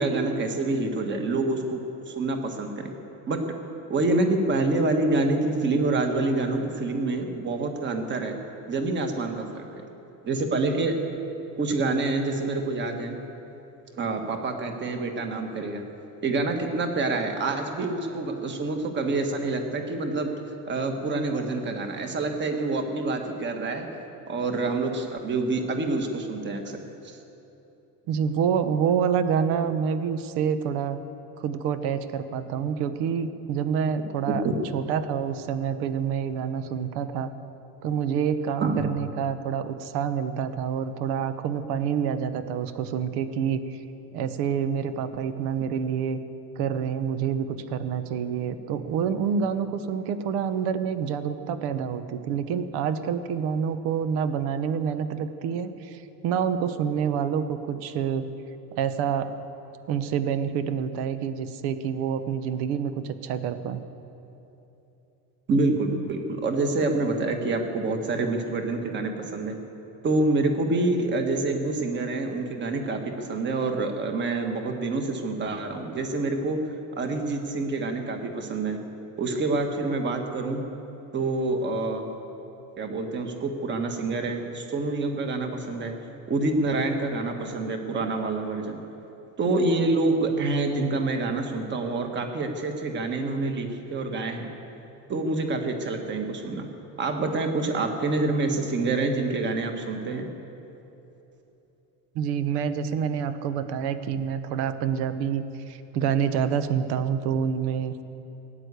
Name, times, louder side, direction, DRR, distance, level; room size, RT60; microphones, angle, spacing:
voice 1, 0.0-2.9 3.3-3.4 3.9-8.4 8.6-9.6 10.2-10.9 11.6-13.2 14.0-15.8 16.2-20.3 20.7-23.9 24.3-27.2 34.4-34.5 38.6-38.9 65.5-69.6 70.0-76.6 77.0-78.8 79.2-80.6 81.1-82.1 82.8-85.9 86.3-88.8 89.4-94.5 95.1-96.7 97.0-100.3, right 2 dB, 30° right, 5 dB, 1.4 m, -27 dB
voice 2, 28.1-31.0 31.4-34.4 34.7-37.3 37.8-43.8 44.1-46.2 46.6-58.3 58.8-59.3 59.9-63.8 102.1-108.0, right 7 dB, 85° right, 11 dB, 1.1 m, -27 dB
17.5 x 9.8 x 8.2 m, 3.0 s
cardioid pair, 175°, 37 cm